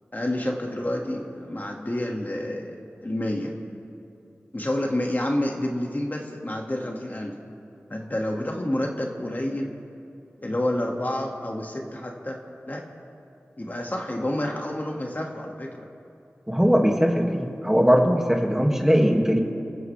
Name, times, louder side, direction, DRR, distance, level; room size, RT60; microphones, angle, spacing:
voice 1, 0.1-2.8 3.0-3.5 4.5-7.3 7.9-9.7 10.4-12.4 12.7-12.9 13.6-15.9, left 1 dB, 40° left, 0 dB, 2.1 m, -29 dB
voice 2, 16.5-19.4, equal, 10° right, 0 dB, 2.3 m, -20 dB
29.0 x 14.0 x 3.5 m, 2.6 s
wide cardioid pair, 45°, 5 cm